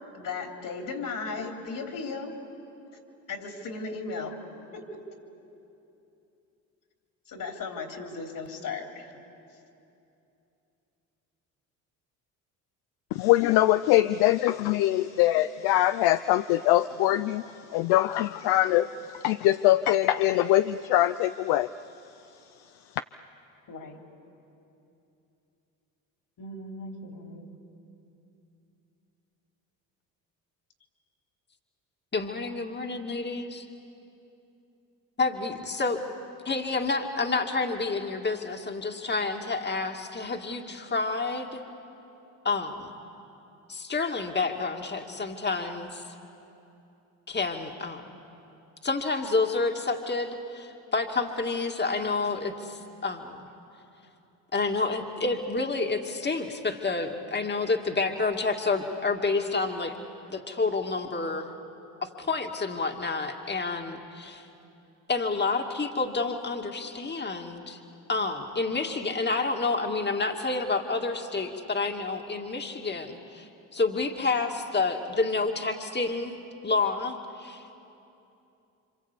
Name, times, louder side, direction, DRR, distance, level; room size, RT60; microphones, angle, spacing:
voice 1, 0.1-2.4 3.3-4.4 4.7-5.0 7.3-9.2 23.7-24.0 26.4-27.6, left 4 dB, 55° left, 3 dB, 3.7 m, -36 dB
voice 2, 13.1-17.4 17.7-21.7, left 14 dB, 70° left, 12 dB, 0.6 m, -23 dB
voice 3, 32.1-33.7 35.2-36.0 36.4-41.6 42.4-42.9 43.7-46.0 47.3-48.0 48.8-53.4 54.5-60.0 60.3-61.5 62.0-64.5 65.1-67.8 68.1-76.3 76.6-77.6, left 3 dB, 25° left, 4 dB, 2.3 m, -29 dB
28.0 x 25.5 x 8.3 m, 2.8 s
hypercardioid pair, 65°, 41 cm